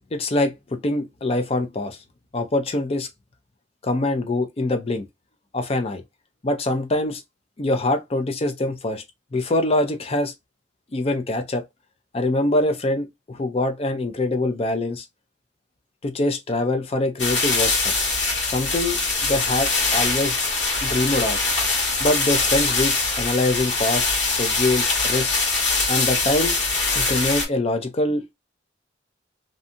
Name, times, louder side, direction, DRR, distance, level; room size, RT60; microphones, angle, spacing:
voice 1, 0.1-2.0 2.3-3.1 3.8-5.0 5.5-6.0 6.4-7.2 7.6-9.0 9.3-10.3 10.9-11.6 12.1-15.0 16.0-17.9 18.4-20.4 20.8-21.4 22.0-25.3 25.9-26.6 26.9-28.3, left 2 dB, 35° left, 0.5 m, -24 dB
sound 1, 17.2-27.5, left 3 dB, 70° left, 1.5 m, -23 dB
2.7 x 2.3 x 2.6 m
head